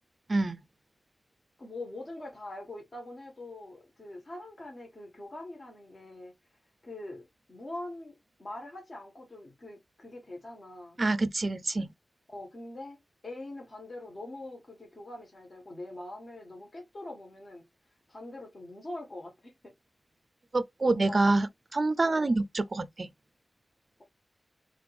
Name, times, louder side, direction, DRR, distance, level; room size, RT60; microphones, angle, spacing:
voice 1, 0.3-0.6 11.0-11.9 20.5-21.5 21.7-23.1, right 2 dB, 45° right, 0.4 m, -26 dB
voice 2, 1.6-6.3 6.8-11.0 12.3-13.0 13.2-17.6 18.1-19.7 20.9-21.3 22.0-22.4, left 1 dB, 40° left, 1.6 m, -43 dB
3.8 x 3.3 x 3.3 m
wide cardioid pair, 100°, 0 cm